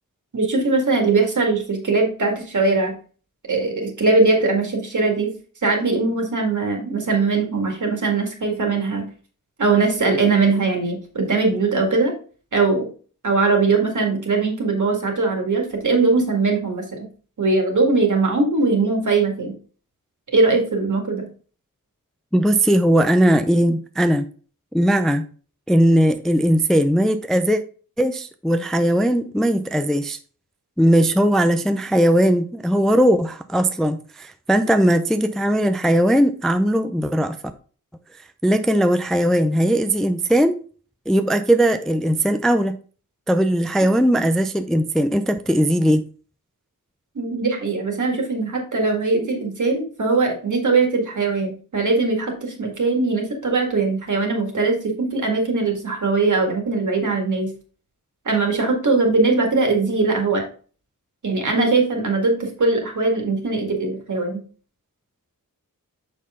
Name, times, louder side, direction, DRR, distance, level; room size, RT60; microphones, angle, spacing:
voice 1, 0.3-3.0 3.5-5.3 5.6-9.1 9.6-12.1 12.5-12.9 13.2-17.1 17.4-19.5 20.3-21.3 47.2-57.5 58.3-60.4 61.2-64.4, right 3 dB, 60° right, 2.0 m, -20 dB
voice 2, 22.3-24.3 24.7-25.3 25.7-27.6 28.0-30.2 30.8-37.4 38.4-40.6 41.1-42.8 43.3-46.0, equal, ahead, 0.4 m, -19 dB
6.5 x 5.5 x 3.6 m
wide cardioid pair, 120°, 34 cm